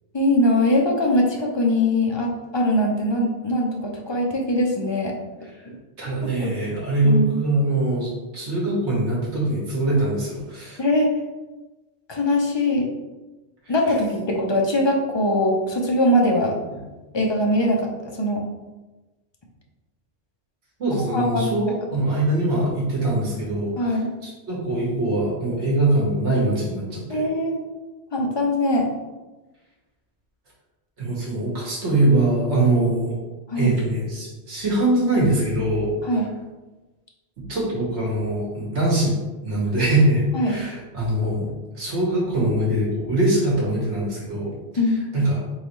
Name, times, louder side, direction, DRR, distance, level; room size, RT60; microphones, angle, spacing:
voice 1, 0.1-5.1 5.6-5.7 6.2-6.5 7.0-7.4 10.8-11.1 12.1-12.9 13.7-16.5 17.1-18.4 21.0-21.5 23.8-24.1 27.1-27.6 28.1-28.9 33.5-33.7 36.0-36.3 40.3-40.6 44.8-45.0, left 1 dB, 35° left, 0 dB, 0.4 m, -21 dB
voice 2, 6.0-10.8 20.8-23.9 24.2-27.3 31.0-33.2 33.6-35.9 37.5-39.2 39.4-41.5 41.7-44.5 45.1-45.4, right 1 dB, 70° right, -5 dB, 1.7 m, -22 dB
3.9 x 3.8 x 3.1 m, 1.1 s
omnidirectional pair, 1.2 m